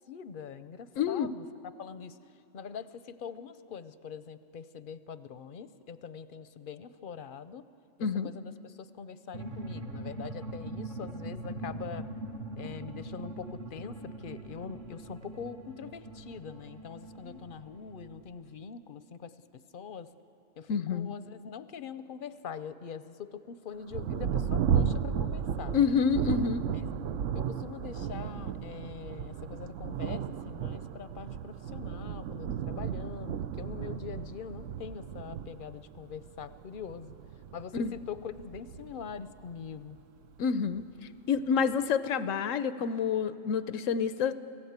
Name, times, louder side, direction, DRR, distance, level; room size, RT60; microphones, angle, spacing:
voice 1, 0.1-1.5 1.8-2.2 2.5-7.7 8.2-12.1 12.6-20.1 20.6-25.7 26.7-26.9 27.3-37.2 37.5-40.0, left 6 dB, 50° left, 13 dB, 0.7 m, -43 dB
voice 2, 1.0-1.3 8.0-8.3 17.2-17.4 20.7-21.1 25.7-26.6 37.7-37.9 40.4-40.9 41.3-44.4, left 6 dB, 90° left, 13 dB, 1.1 m, -28 dB
sound 1, 9.3-18.5, right 1 dB, 40° right, 1.2 m, -42 dB
Thunder, 23.9-40.0 40.7-40.8 41.4-41.8, right 8 dB, 75° right, 1.0 m, -34 dB
25.5 x 16.5 x 8.1 m, 2.7 s
omnidirectional pair, 1.3 m